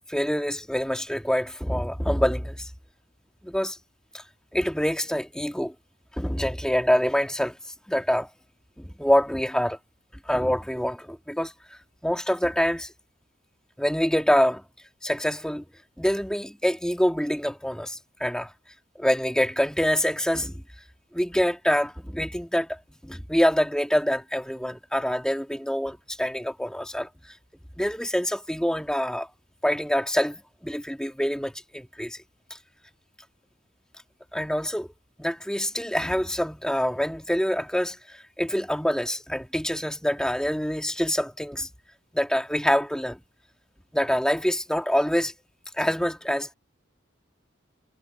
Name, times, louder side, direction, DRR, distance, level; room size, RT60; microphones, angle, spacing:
voice 1, 0.1-2.7 3.4-3.8 4.1-4.2 4.5-5.7 6.2-7.6 7.9-8.3 8.8-9.8 10.3-11.5 12.0-12.9 13.8-14.6 15.0-15.7 16.0-18.5 19.0-20.6 21.1-22.8 23.0-27.1 27.8-29.3 29.6-32.2 34.3-34.9 35.2-41.7 42.1-43.2 43.9-45.3 45.8-46.5, equal, 5° left, 2.1 m, -25 dB
head